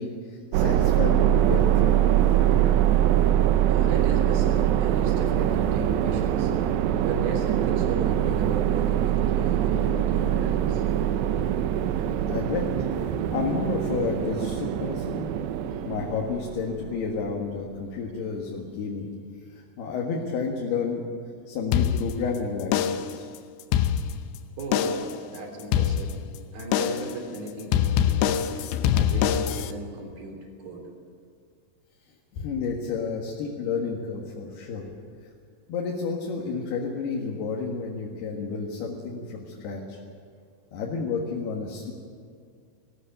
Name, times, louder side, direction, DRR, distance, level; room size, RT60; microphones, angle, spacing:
voice 1, 0.0-2.0 12.3-12.7 13.0-15.6 15.9-19.1 19.8-21.0 21.5-23.3 32.3-34.9 35.7-40.0 40.7-41.9, left 5 dB, 70° left, -1 dB, 3.6 m, -30 dB
sound 1, 0.5-17.0, right 11 dB, 80° right, 2.9 m, -23 dB
voice 2, 3.7-6.5 7.0-10.8 24.6-26.1 26.5-30.8, right 2 dB, 60° right, 1 dB, 5.2 m, -37 dB
sound 2, 21.7-22.4 22.7-23.2 23.6-24.4 24.7-25.2 25.7-26.4 26.7-27.2 27.7-29.7, left 9 dB, 90° left, 3.1 m, -24 dB
20.5 x 16.0 x 9.1 m, 2.1 s
omnidirectional pair, 5.0 m